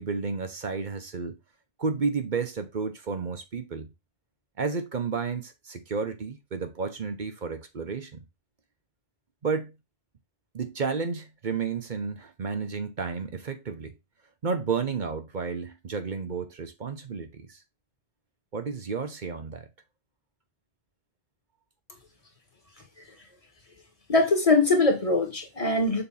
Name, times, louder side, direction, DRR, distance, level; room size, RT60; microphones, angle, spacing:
voice 1, 0.0-1.4 1.8-3.9 4.6-8.2 9.4-9.7 10.5-13.9 14.4-17.6 18.5-19.7, right 5 dB, 45° right, 0.9 m, -31 dB
voice 2, 24.1-26.0, left 3 dB, 30° left, 1.6 m, -22 dB
7.0 x 2.9 x 5.4 m
omnidirectional pair, 1.2 m